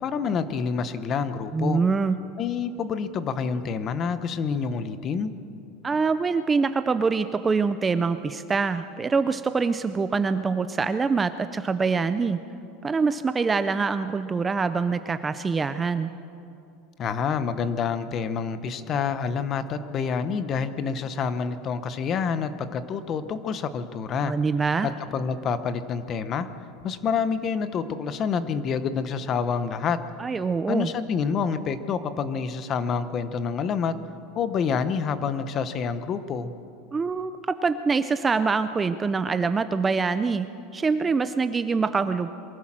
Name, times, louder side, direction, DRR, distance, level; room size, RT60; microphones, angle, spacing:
voice 1, 0.0-1.8 2.4-5.3 17.0-24.3 24.8-26.5 26.8-30.0 30.7-33.9 34.3-36.5, left 6 dB, 25° left, 12 dB, 0.9 m, -27 dB
voice 2, 1.5-2.2 5.8-12.4 12.8-16.1 24.2-24.9 30.2-30.9 36.9-42.3, right 4 dB, 10° right, 11 dB, 0.4 m, -25 dB
23.0 x 15.5 x 7.5 m, 2.6 s
supercardioid pair, 170°, 0 cm